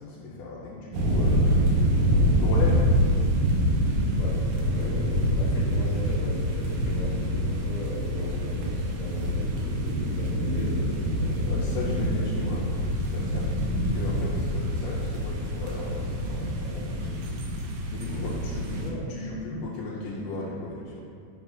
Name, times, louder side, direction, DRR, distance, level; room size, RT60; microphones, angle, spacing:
voice 1, 0.0-1.6 2.4-2.9 11.5-17.2 17.9-21.0, left 3 dB, 85° left, -7 dB, 2.3 m, -36 dB
sound 1, 0.9-18.9, equal, 80° right, 2.2 m, -26 dB
voice 2, 4.1-12.5 18.1-19.0, left 2 dB, 60° left, -7 dB, 2.1 m, -39 dB
5.9 x 3.6 x 4.5 m, 2.5 s
omnidirectional pair, 3.7 m